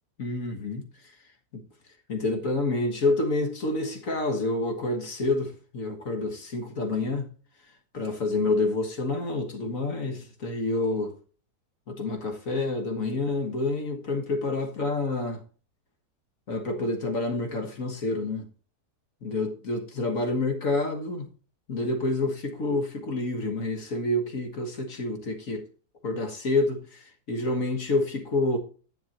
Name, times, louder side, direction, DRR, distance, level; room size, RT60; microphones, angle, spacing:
voice 1, 0.2-0.8 1.5-1.6 2.1-7.3 7.9-11.1 11.9-15.4 16.5-18.5 19.2-21.3 21.7-25.7 26.0-28.6, left 2 dB, 60° left, 1.8 m, -28 dB
10.5 x 8.6 x 2.9 m
omnidirectional pair, 1.6 m